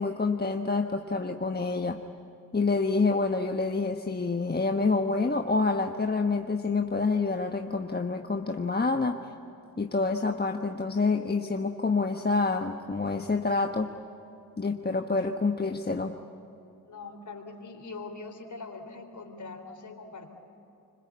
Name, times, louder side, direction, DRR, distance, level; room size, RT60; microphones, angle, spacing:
voice 1, 0.0-2.0 2.5-9.2 9.8-13.9 14.6-16.1, left 3 dB, 25° left, 4 dB, 1.3 m, -27 dB
voice 2, 16.8-20.3, left 3 dB, 50° left, 5 dB, 4.0 m, -42 dB
25.5 x 25.5 x 8.4 m, 2.8 s
supercardioid pair, 45°, 39 cm